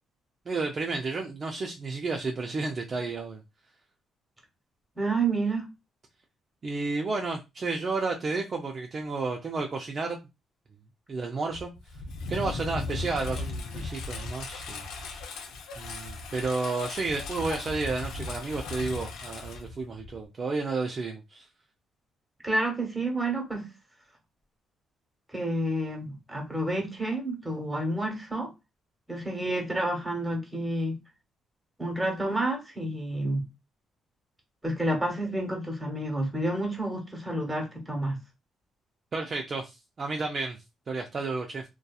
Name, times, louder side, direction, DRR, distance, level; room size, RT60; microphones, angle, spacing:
voice 1, 0.5-3.4 6.6-10.2 11.1-11.7 12.3-14.8 15.8-21.4 39.1-40.6 40.9-41.6, right 3 dB, 40° right, 0.5 m, -31 dB
voice 2, 4.9-5.7 22.4-23.7 25.3-28.5 29.1-31.0 31.8-33.5 34.6-38.2, right 1 dB, 10° right, 1.1 m, -29 dB
Engine, 11.5-20.3, left 3 dB, 85° left, 0.6 m, -37 dB
2.7 x 2.3 x 2.3 m
cardioid pair, 90°, 0 cm